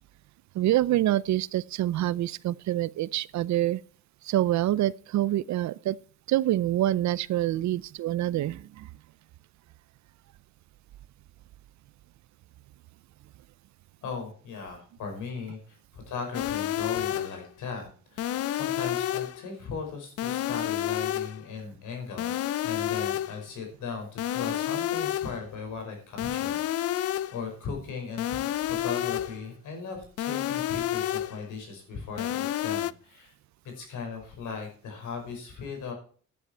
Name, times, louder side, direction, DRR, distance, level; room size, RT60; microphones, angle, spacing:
voice 1, 0.5-3.8 4.2-6.0 6.3-8.9, right 14 dB, 70° right, 0.5 m, -26 dB
voice 2, 14.0-33.3 33.8-35.9, left 5 dB, 80° left, 5.4 m, -38 dB
sound 1, 16.3-17.5 18.2-19.5 20.2-21.5 22.2-23.5 24.2-25.5 26.2-27.5 28.2-29.5 30.2-31.5 32.2-32.9, left 12 dB, 55° left, 0.5 m, -30 dB
11.0 x 9.9 x 4.4 m
cardioid pair, 90°, 30 cm